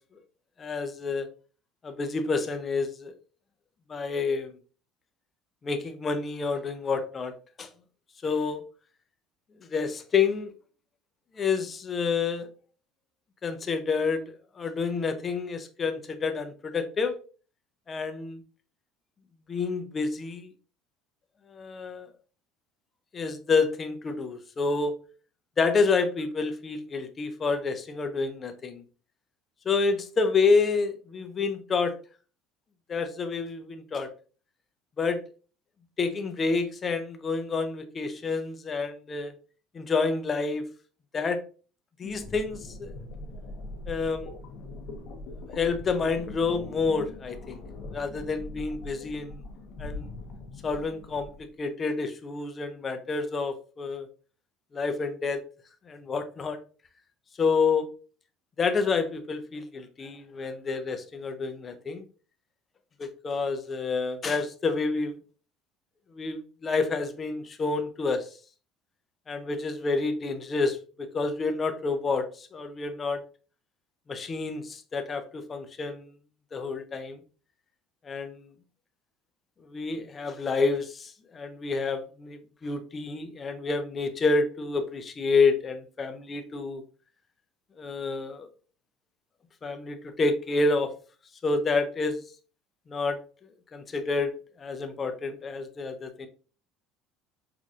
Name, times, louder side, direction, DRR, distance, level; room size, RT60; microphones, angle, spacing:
voice 1, 0.6-1.3 1.8-3.1 3.9-4.6 5.6-7.3 7.6-7.7 8.2-8.6 9.6-10.5 11.3-12.5 13.4-17.1 17.9-18.4 19.5-20.5 21.5-22.1 23.1-24.9 25.6-28.8 29.7-31.9 32.9-34.1 35.0-35.2 36.0-39.3 39.7-40.7 41.1-41.4 42.0-42.9 43.9-44.3 45.5-47.6 47.9-49.4 49.8-50.1 50.6-51.3 51.6-54.1 54.7-55.4 55.9-56.6 57.4-57.9 58.6-62.0 63.0-65.2 66.1-68.3 69.3-73.2 74.1-76.1 76.5-77.2 78.0-78.5 79.6-86.8 87.8-88.5 89.6-90.9 91.4-92.2 92.9-93.2 93.7-96.3, left 4 dB, 20° left, 8 dB, 0.5 m, -28 dB
sound 1, 42.0-51.5, left 2 dB, 45° left, 0.8 m, -41 dB
5.7 x 2.5 x 2.3 m, 0.38 s
cardioid pair, 165°, 0 cm